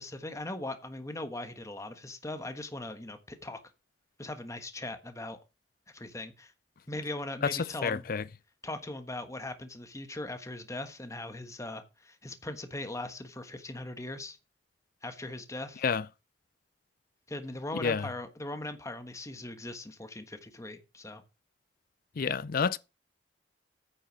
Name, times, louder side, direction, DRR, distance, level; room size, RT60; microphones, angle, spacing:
voice 1, 0.0-3.6 4.2-5.4 5.9-6.5 6.9-8.0 8.6-14.4 15.0-15.8 17.3-21.2, left 2 dB, 20° left, 1.3 m, -40 dB
voice 2, 7.4-8.2 15.8-16.0 17.8-18.1 22.2-22.8, left 6 dB, 55° left, 0.5 m, -29 dB
9.7 x 6.3 x 6.3 m
head